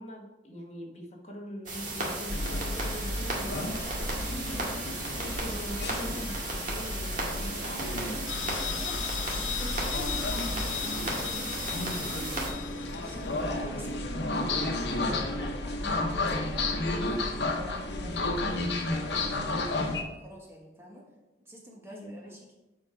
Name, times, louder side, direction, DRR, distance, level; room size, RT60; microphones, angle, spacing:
voice 1, 0.0-4.8 5.2-8.2 8.7-9.0 9.5-12.7 21.9-22.3, equal, 35° left, 0 dB, 1.3 m, -42 dB
sound 1, 1.7-12.5, right 2 dB, 45° right, 1.8 m, -35 dB
sound 2, 2.3-20.0, left 2 dB, 70° left, 0.9 m, -32 dB
voice 2, 7.7-8.2 8.6-9.0 12.9-16.7 17.1-21.0 21.4-22.5, equal, 15° right, -2 dB, 1.4 m, -48 dB
sound 3, 8.3-13.5, left 12 dB, 85° left, 0.4 m, -37 dB
7.4 x 4.9 x 4.9 m, 1.0 s
head